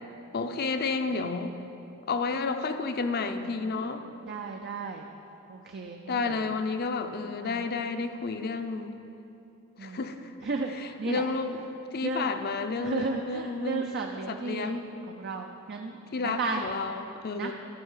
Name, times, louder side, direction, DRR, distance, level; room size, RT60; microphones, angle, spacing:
voice 1, 0.3-1.5 2.1-4.0 6.1-8.9 9.8-10.3 10.8-11.6 11.9-13.8 14.3-14.9 16.1-17.5, left 4 dB, 50° left, 8 dB, 0.6 m, -31 dB
voice 2, 4.2-5.1 5.5-6.4 7.4-7.7 9.8-10.1 10.4-11.2 12.0-12.3 12.8-14.8 15.1-16.6 17.3-17.5, right 4 dB, 50° right, 3 dB, 0.5 m, -34 dB
12.0 x 5.6 x 7.2 m, 2.9 s
head